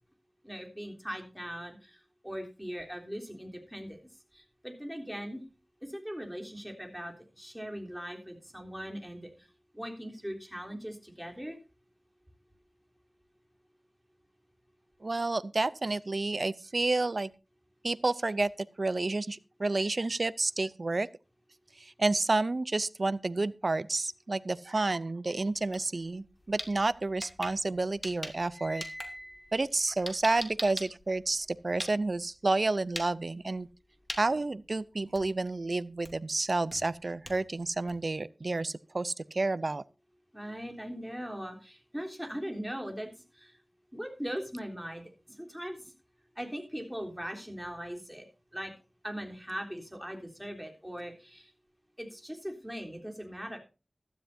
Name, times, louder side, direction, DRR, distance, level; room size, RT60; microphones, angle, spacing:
voice 1, 0.4-4.0 4.3-5.4 5.8-9.5 9.7-11.6 40.3-43.6 43.9-45.9 46.4-48.2 48.5-48.7 49.0-51.5 52.0-53.6, equal, 5° right, 3.5 m, -40 dB
voice 2, 15.0-17.3 17.8-18.5 18.8-21.1 21.8-28.8 29.5-33.7 34.2-39.8, right 2 dB, 55° right, 0.6 m, -30 dB
sound 1, 25.6-25.8 26.2-28.5 28.8-32.2 32.8-33.1 33.4-33.8 34.1-34.2 34.7-34.8 35.1-35.5 36.0-36.3 36.7-38.1, left 1 dB, 20° left, 2.7 m, -41 dB
sound 2, 26.5-27.6 27.9-31.3, equal, 45° left, 4.7 m, -48 dB
16.0 x 12.5 x 2.7 m
wide cardioid pair, 50°, 0 cm